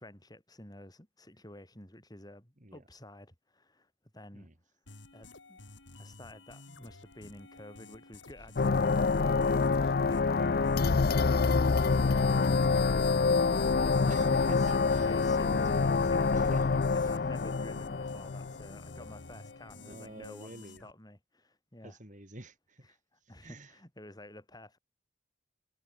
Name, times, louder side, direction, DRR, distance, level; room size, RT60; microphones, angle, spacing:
voice 1, 0.0-4.5 5.1-5.6 6.0-9.6 9.9-14.8 15.1-16.6 17.0-22.0 22.9-24.8, left 1 dB, 20° left, 7.8 m, -51 dB
sound 1, 4.9-20.9, left 3 dB, 80° left, 3.2 m, -52 dB
sound 2, 8.6-19.1, left 4 dB, 55° left, 0.5 m, -26 dB
voice 2, 13.4-17.1 17.6-17.9 19.6-20.8 21.8-23.0 23.4-23.7, right 1 dB, 40° right, 4.5 m, -49 dB
head